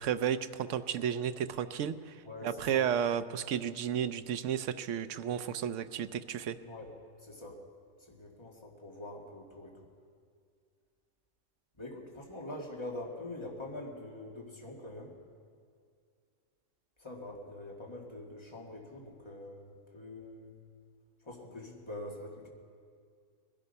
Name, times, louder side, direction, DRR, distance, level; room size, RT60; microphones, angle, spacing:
voice 1, 0.0-2.2 2.4-6.6, right 9 dB, 70° right, 12 dB, 1.0 m, -32 dB
voice 2, 2.3-2.9 6.6-6.9 7.2-7.6 8.1-9.8 11.8-15.2 17.0-20.5 21.2-22.5, left 1 dB, 20° left, -1 dB, 2.1 m, -44 dB
21.0 x 12.5 x 5.6 m, 2.2 s
omnidirectional pair, 1.4 m